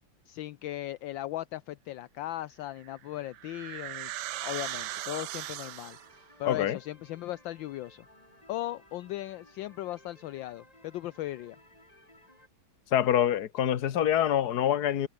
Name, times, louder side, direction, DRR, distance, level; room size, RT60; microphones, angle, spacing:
voice 1, 0.3-4.1 4.4-6.0 6.4-8.0 8.5-11.6, left 14 dB, 75° left, 1.4 m, -37 dB
sound 1, 2.8-6.2, right 14 dB, 70° right, 1.1 m, -38 dB
sound 2, 4.3-12.5, left 1 dB, 15° left, 5.8 m, -59 dB
voice 2, 6.4-6.8 12.9-15.1, left 10 dB, 55° left, 1.6 m, -25 dB
omnidirectional pair, 2.2 m